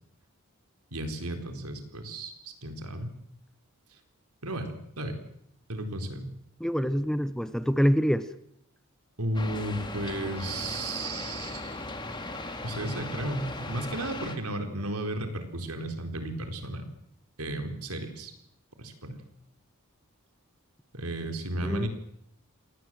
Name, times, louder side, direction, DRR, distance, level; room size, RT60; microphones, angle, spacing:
voice 1, 0.9-3.1 4.4-5.2 5.7-6.3 9.2-11.8 12.6-16.8 17.4-18.3 18.8-19.2 20.9-21.9, right 1 dB, 90° right, 6 dB, 4.1 m, -34 dB
voice 2, 6.6-8.3 21.6-21.9, equal, ahead, 13 dB, 0.8 m, -25 dB
sound 1, 9.3-14.4, left 2 dB, 20° left, 2.6 m, -38 dB
27.0 x 19.0 x 7.6 m, 0.73 s
head